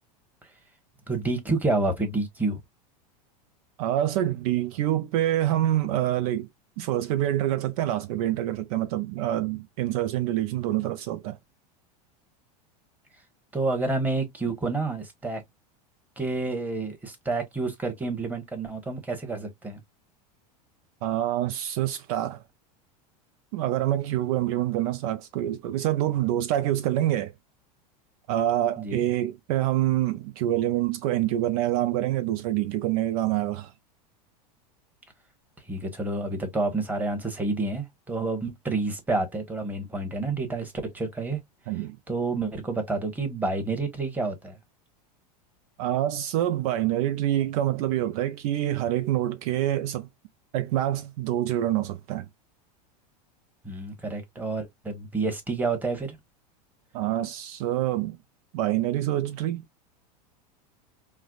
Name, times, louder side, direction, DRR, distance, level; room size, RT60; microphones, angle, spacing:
voice 1, 1.1-2.6 13.5-15.4 16.2-19.8 28.8-29.0 35.7-41.4 42.1-44.6 53.6-56.2, right 3 dB, 10° right, 1.2 m, -29 dB
voice 2, 3.8-6.5 6.8-11.4 21.0-22.4 23.5-27.3 28.3-33.7 41.7-42.0 45.8-50.1 50.5-52.3 56.9-58.2 58.5-59.6, right 13 dB, 60° right, 0.5 m, -26 dB
4.6 x 2.1 x 2.3 m
hypercardioid pair, 110°, 21 cm